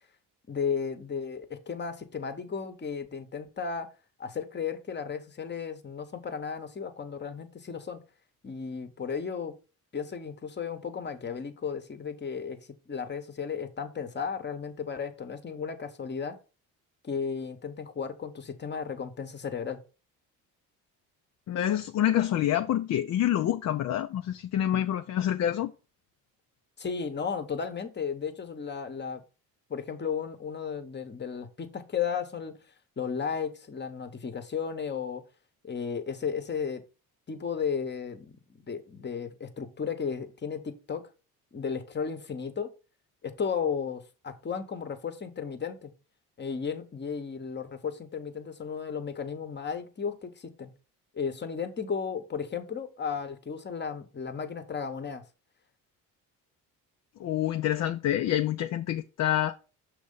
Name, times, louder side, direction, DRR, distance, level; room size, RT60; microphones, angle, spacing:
voice 1, 0.5-3.9 4.2-8.0 8.4-9.6 9.9-12.6 12.9-16.4 17.0-19.8 26.8-29.2 29.7-32.6 33.0-35.2 35.6-36.8 37.3-41.1 41.5-42.7 43.2-45.9 46.4-50.7 51.1-55.2, left 6 dB, 25° left, 1.0 m, -34 dB
voice 2, 21.5-25.7 57.2-59.6, left 11 dB, 45° left, 0.5 m, -27 dB
6.3 x 3.0 x 5.3 m
supercardioid pair, 80°, 38 cm